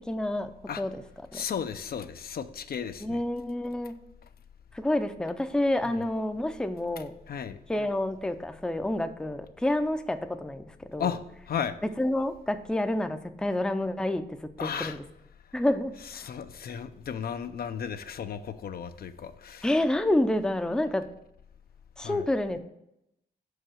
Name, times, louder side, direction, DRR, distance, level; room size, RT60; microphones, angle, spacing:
voice 1, 0.1-0.5 0.8-1.0 1.3-1.4 3.0-3.9 4.7-7.1 7.7-11.1 12.0-15.0 15.5-16.2 19.6-21.1 22.0-22.6, left 1 dB, 5° left, 8 dB, 0.5 m, -28 dB
voice 2, 1.3-3.2 5.8-6.0 7.3-7.6 11.0-11.2 11.5-11.7 14.6-15.0 16.2-19.7 22.0-22.2, left 8 dB, 65° left, 9 dB, 0.5 m, -34 dB
5.4 x 4.7 x 6.2 m, 0.82 s
cardioid pair, 95°, 17 cm